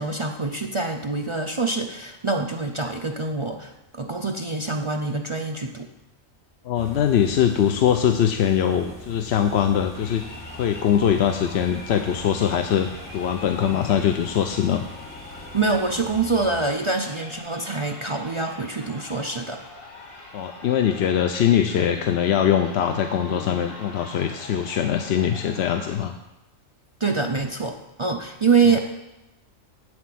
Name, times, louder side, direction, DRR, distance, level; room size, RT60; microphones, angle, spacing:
voice 1, 0.0-5.9 15.5-19.6 27.0-28.8, right 4 dB, 45° right, 2 dB, 0.4 m, -25 dB
voice 2, 6.6-10.2 10.6-14.8 20.3-26.1 28.7-28.8, left 9 dB, 65° left, 6 dB, 0.8 m, -22 dB
sound 1, 6.7-16.5, left 1 dB, 10° left, 2.5 m, -42 dB
Crowd, 9.9-26.0, left 2 dB, 45° left, 1.5 m, -43 dB
8.1 x 6.2 x 7.6 m, 0.95 s
omnidirectional pair, 1.4 m